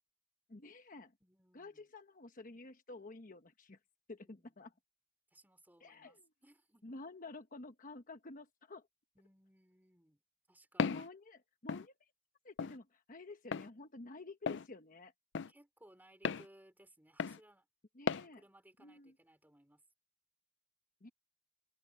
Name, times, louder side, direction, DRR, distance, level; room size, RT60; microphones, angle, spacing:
voice 1, 0.5-1.1 1.5-3.8 4.1-4.7 5.8-6.3 6.8-8.9 10.9-12.1 12.4-15.1 17.9-18.4 18.8-19.1 21.0-21.1, left 2 dB, 45° left, 1.1 m, -51 dB
voice 2, 1.2-1.8 4.2-4.7 5.3-7.0 9.2-10.2 10.5-11.1 15.5-17.7 18.2-19.8, right 1 dB, 10° right, 5.2 m, -64 dB
Walk footsteps, 10.8-11.1 11.7-11.9 12.6-12.8 13.5-13.7 14.5-14.7 15.3-15.5 16.2-16.5 17.2-17.4 18.1-18.3, left 5 dB, 65° left, 0.5 m, -35 dB
head